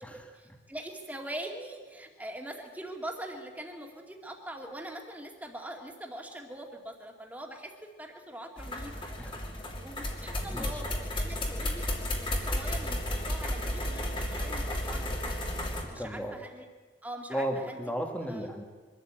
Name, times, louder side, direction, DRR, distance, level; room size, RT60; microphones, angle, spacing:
voice 1, 0.3-9.1 9.7-10.9 11.1-15.3 15.8-16.6 17.0-17.8 18.2-18.5, right 1 dB, 10° right, 2 dB, 2.3 m, -43 dB
sound 1, 8.6-15.8, left 1 dB, 30° left, 2.7 m, -33 dB
voice 2, 10.4-10.8 15.8-16.4 17.3-18.6, equal, 10° left, 3 dB, 1.8 m, -35 dB
24.0 x 13.5 x 8.9 m, 1.4 s
head